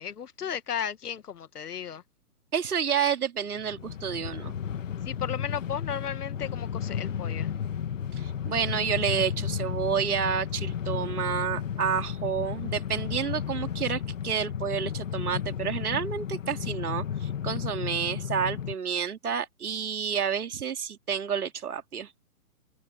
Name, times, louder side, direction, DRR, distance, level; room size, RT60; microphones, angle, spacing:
voice 1, 0.0-2.0 5.0-7.5, left 8 dB, 80° left, 1.7 m, -35 dB
voice 2, 2.5-4.5 8.2-22.1, right 7 dB, 75° right, 3.2 m, -30 dB
Train, 3.5-18.7, left 8 dB, 55° left, 2.2 m, -33 dB
hypercardioid pair, 170°, 45 cm